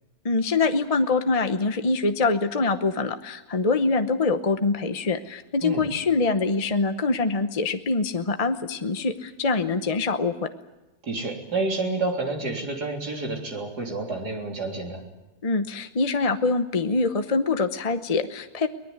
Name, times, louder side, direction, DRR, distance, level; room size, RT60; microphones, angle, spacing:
voice 1, 0.2-10.5 15.4-18.7, left 3 dB, 30° left, 9 dB, 0.8 m, -24 dB
voice 2, 11.1-15.0, right 3 dB, 80° right, 2 dB, 4.1 m, -29 dB
23.0 x 19.5 x 9.6 m, 1.1 s
omnidirectional pair, 1.7 m